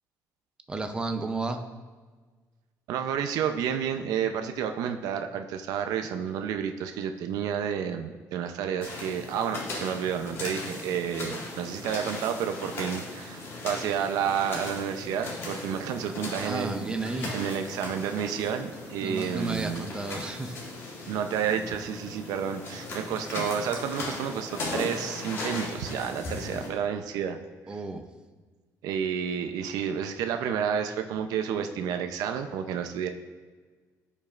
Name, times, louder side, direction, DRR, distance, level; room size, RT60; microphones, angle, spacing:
voice 1, 0.7-1.7 16.4-17.4 19.0-20.6 27.7-28.1, right 3 dB, 15° right, 6 dB, 0.6 m, -32 dB
voice 2, 2.9-16.9 17.3-19.9 21.1-27.4 28.8-33.1, right 8 dB, 85° right, 6 dB, 0.6 m, -30 dB
sound 1, 8.8-26.7, left 2 dB, 40° left, 1.8 m, -38 dB
14.5 x 5.3 x 2.5 m, 1.4 s
cardioid pair, 170°, 6 cm